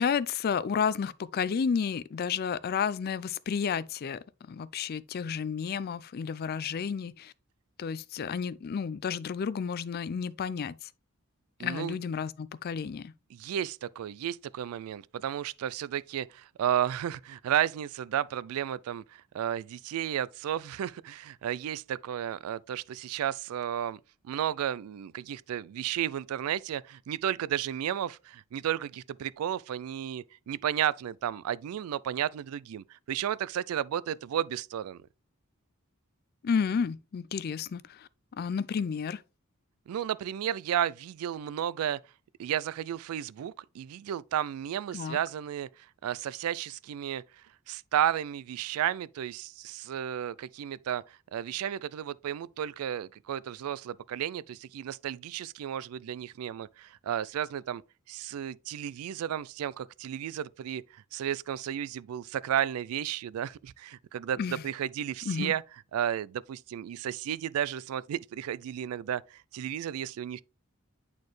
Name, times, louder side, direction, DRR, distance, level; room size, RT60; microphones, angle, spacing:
voice 1, 0.0-4.2 4.5-7.3 7.8-10.9 11.6-13.1 36.4-38.1 38.4-39.2 44.9-45.2 64.4-64.6 65.3-65.5, left 6 dB, 45° left, 0.3 m, -31 dB
voice 2, 11.6-12.0 13.3-24.0 24.2-35.0 39.9-42.0 42.4-47.2 47.7-51.0 51.3-57.8 58.1-65.6 65.9-70.4, right 10 dB, 80° right, 0.3 m, -33 dB
8.6 x 4.2 x 3.1 m
head